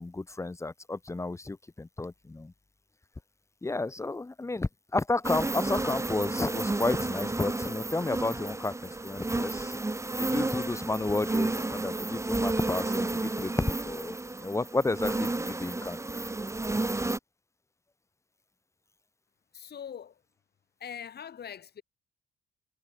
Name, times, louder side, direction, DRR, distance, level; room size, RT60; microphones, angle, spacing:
voice 1, 0.0-2.5 3.6-9.8 10.2-16.0, left 2 dB, 15° left, 1.0 m, -32 dB
sound 1, 5.2-17.2, right 2 dB, 15° right, 1.8 m, -31 dB
voice 2, 19.5-20.1 20.8-21.8, left 8 dB, 55° left, 3.5 m, -42 dB
cardioid pair, 90°, 20 cm